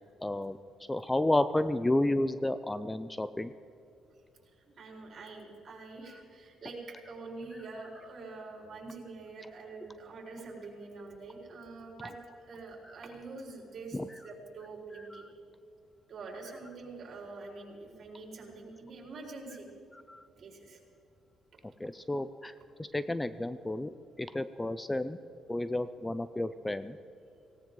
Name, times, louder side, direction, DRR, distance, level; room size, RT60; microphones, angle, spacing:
voice 1, 0.2-0.6 0.9-3.5 13.9-14.1 14.9-15.3 19.9-20.2 21.8-22.5 22.8-25.2 25.5-27.0, left 1 dB, 15° left, 13 dB, 0.5 m, -31 dB
voice 2, 4.7-12.2 12.5-15.2 16.1-19.7 20.4-20.8, right 3 dB, 55° right, -1 dB, 4.5 m, -45 dB
18.0 x 17.5 x 3.9 m, 2.7 s
cardioid pair, 90°, 0 cm